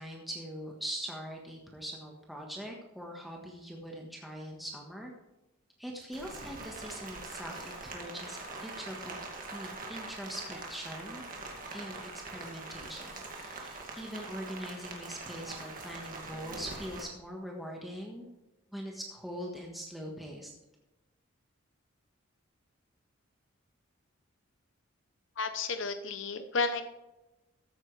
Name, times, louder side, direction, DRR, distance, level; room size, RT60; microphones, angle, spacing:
voice 1, 0.0-5.1 5.8-9.2 9.5-11.2 11.7-18.3 18.7-20.5, equal, ahead, -1 dB, 1.4 m, -42 dB
Rain, 6.1-17.0, right 3 dB, 40° right, 2.2 m, -43 dB
voice 2, 25.4-26.8, left 4 dB, 65° left, 9 dB, 0.7 m, -32 dB
14.0 x 8.8 x 3.3 m, 1.0 s
head